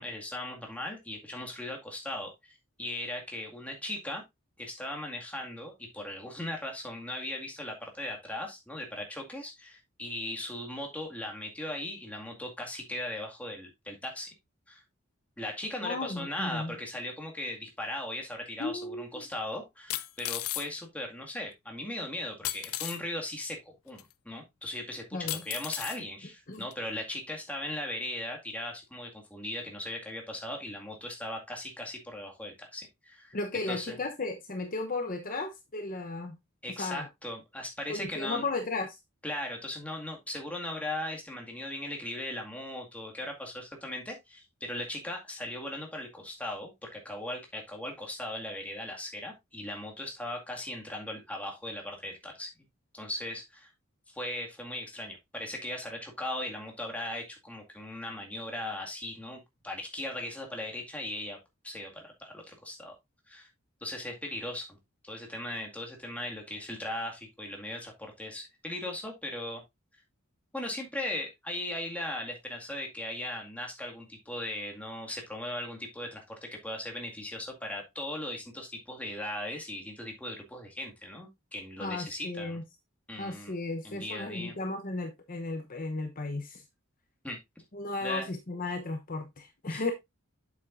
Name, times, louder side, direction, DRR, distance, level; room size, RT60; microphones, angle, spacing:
voice 1, 0.0-4.2 4.6-14.3 14.7-14.8 15.4-33.4 33.7-34.0 36.6-38.4 39.2-52.5 52.9-53.7 54.1-61.4 61.6-62.9 63.3-63.5 63.8-64.8 65.0-69.6 70.5-76.4 76.6-82.6 83.1-83.5 83.8-84.6 87.2-87.4 88.0-88.3 89.7-89.8, left 1 dB, 5° left, 2.0 m, -38 dB
voice 2, 15.8-16.7 18.6-19.2 25.1-25.4 26.5-26.7 33.3-36.4 36.8-37.1 37.9-39.0 81.8-82.6 83.2-86.6 87.7-89.9, left 3 dB, 40° left, 0.9 m, -35 dB
sound 1, 18.6-18.7 19.9-20.7 22.4-23.0 24.0-24.1 25.3-26.0 26.7-26.8, left 15 dB, 90° left, 0.6 m, -34 dB
8.1 x 7.3 x 2.6 m
head